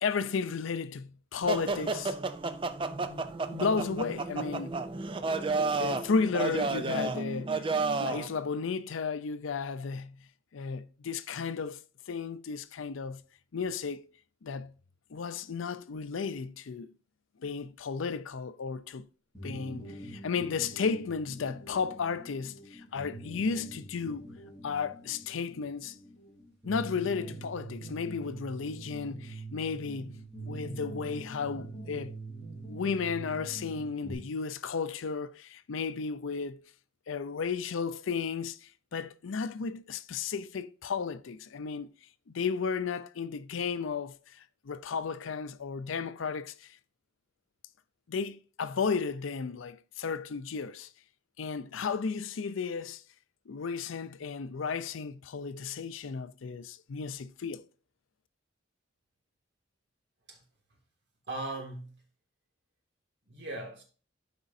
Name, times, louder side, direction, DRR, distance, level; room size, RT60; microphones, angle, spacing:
voice 1, 0.0-2.2 3.0-3.3 3.5-4.8 5.8-7.6 8.0-10.3 10.5-11.8 12.1-13.2 13.5-14.0 14.4-14.7 15.1-16.9 17.4-19.1 19.4-24.3 24.6-26.0 26.6-32.2 32.7-36.6 37.1-41.9 42.3-46.7 48.1-50.9 51.4-53.0 53.5-57.6, left 5 dB, 80° left, 0.5 m, -34 dB
sound 1, 1.5-8.3, right 3 dB, 25° right, 0.4 m, -32 dB
sound 2, 19.3-34.1, right 2 dB, 5° right, 3.9 m, -44 dB
voice 2, 61.3-62.0 63.3-63.8, right 2 dB, 55° right, 2.1 m, -38 dB
12.5 x 5.1 x 2.6 m
head